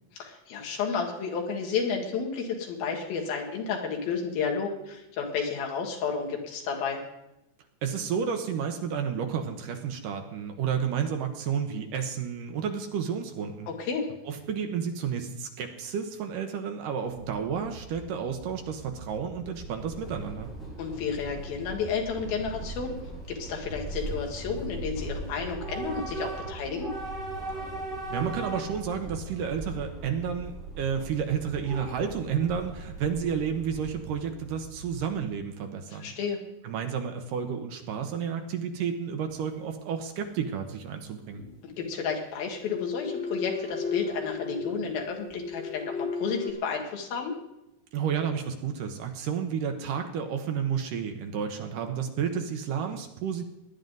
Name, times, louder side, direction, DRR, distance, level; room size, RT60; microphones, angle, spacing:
voice 1, 0.1-7.0 13.7-14.1 20.8-23.0 23.3-26.9 35.9-36.4 41.8-47.4, left 5 dB, 85° left, 1 dB, 3.7 m, -31 dB
voice 2, 7.8-13.7 14.3-20.5 28.1-36.1 36.6-41.4 47.9-53.4, right 7 dB, 70° right, 6 dB, 2.4 m, -31 dB
sound 1, 17.0-35.1, right 2 dB, 45° right, 3.8 m, -46 dB
Train / Subway metro underground, 19.4-34.2, right 2 dB, ahead, 4.5 m, -39 dB
sound 2, 39.3-39.4 41.3-41.9 42.5-46.5, left 4 dB, 20° left, 1.2 m, -35 dB
18.5 x 11.0 x 3.9 m, 0.88 s
omnidirectional pair, 4.2 m